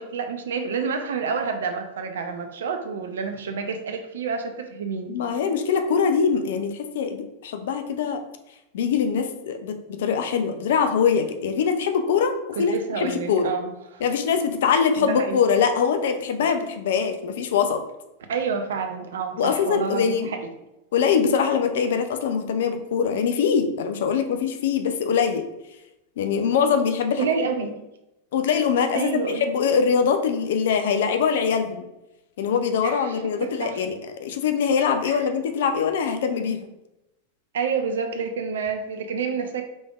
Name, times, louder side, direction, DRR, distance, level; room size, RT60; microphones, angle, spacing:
voice 1, 0.0-5.2 12.6-14.0 15.0-15.4 18.3-20.5 27.2-27.8 28.9-29.5 32.8-33.8 35.0-35.3 37.5-39.7, right 5 dB, 60° right, 6 dB, 0.5 m, -29 dB
voice 2, 5.1-8.2 8.7-12.3 12.6-13.5 14.0-17.8 19.4-20.3 20.9-25.4 26.2-27.2 28.3-31.9 32.4-36.7, left 6 dB, 55° left, 7 dB, 0.5 m, -23 dB
5.2 x 3.3 x 2.3 m, 0.92 s
figure-of-eight pair, 90°, 0 cm